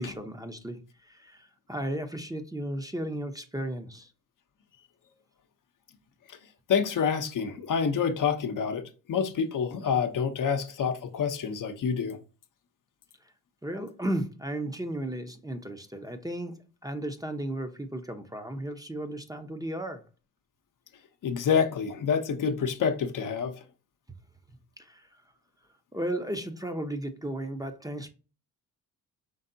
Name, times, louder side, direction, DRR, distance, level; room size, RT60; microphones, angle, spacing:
voice 1, 0.0-4.1 13.6-20.1 24.8-25.2 25.9-28.1, right 1 dB, 10° right, 0.7 m, -35 dB
voice 2, 6.7-8.8 9.1-12.2 21.2-23.6, left 6 dB, 55° left, 0.8 m, -27 dB
5.4 x 3.4 x 2.7 m
supercardioid pair, 65°, 38 cm